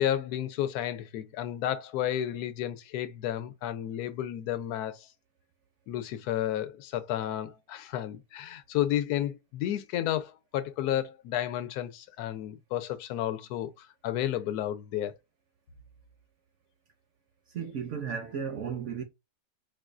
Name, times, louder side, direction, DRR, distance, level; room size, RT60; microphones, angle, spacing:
voice 1, 0.0-5.1 5.9-15.1, left 11 dB, 75° left, 1.1 m, -32 dB
voice 2, 17.5-19.0, right 7 dB, 65° right, 0.7 m, -34 dB
4.6 x 2.3 x 2.4 m
omnidirectional pair, 1.8 m